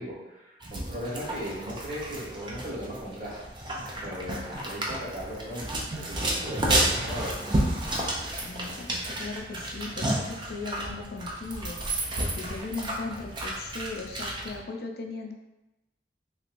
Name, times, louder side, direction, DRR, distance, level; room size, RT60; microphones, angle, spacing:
voice 1, 0.0-3.4 4.0-7.6, equal, 50° right, -6 dB, 1.1 m, -37 dB
sound 1, 0.6-14.6, right 1 dB, 25° right, 0.5 m, -31 dB
voice 2, 8.4-15.3, left 3 dB, 60° left, 3 dB, 0.4 m, -38 dB
3.2 x 3.0 x 2.5 m, 0.99 s
head